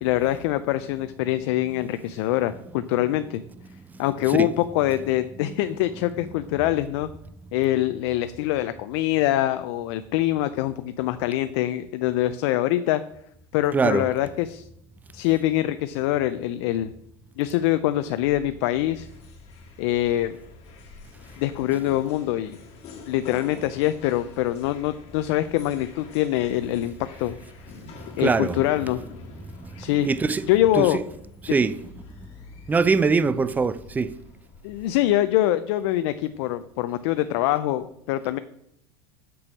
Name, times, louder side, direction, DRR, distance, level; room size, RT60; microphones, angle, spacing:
voice 1, 0.0-3.4 4.0-7.1 7.5-13.0 13.5-14.7 15.1-16.9 17.4-19.1 19.8-20.4 21.4-22.6 23.1-27.4 28.2-29.0 29.8-30.1 30.5-31.0 34.6-38.4, left 14 dB, 65° left, 0.5 m, -24 dB
voice 2, 3.7-4.5 13.7-14.1 28.2-28.6 29.4-30.5 30.7-31.0 31.4-32.3 32.7-34.2, right 4 dB, 10° right, 0.4 m, -24 dB
sound 1, 18.2-35.1, left 4 dB, 45° left, 2.0 m, -46 dB
6.2 x 6.0 x 6.3 m
supercardioid pair, 115°, 15 cm